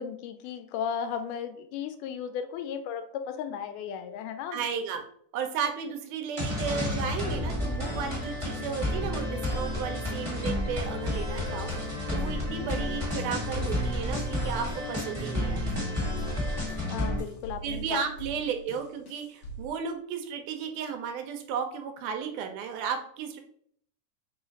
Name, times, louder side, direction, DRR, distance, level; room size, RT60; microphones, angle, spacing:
voice 1, 0.0-4.6 16.6-18.0, left 8 dB, 90° left, 8 dB, 2.1 m, -35 dB
voice 2, 4.5-5.0 5.3-15.7 17.6-23.4, right 7 dB, 85° right, 6 dB, 2.1 m, -34 dB
sound 1, 6.4-17.2, left 1 dB, 15° right, 1.0 m, -31 dB
sound 2, 8.7-16.6, left 3 dB, 35° left, 1.4 m, -45 dB
sound 3, 11.7-19.7, right 3 dB, 65° left, 1.2 m, -43 dB
5.0 x 2.4 x 3.9 m, 0.64 s
omnidirectional pair, 3.6 m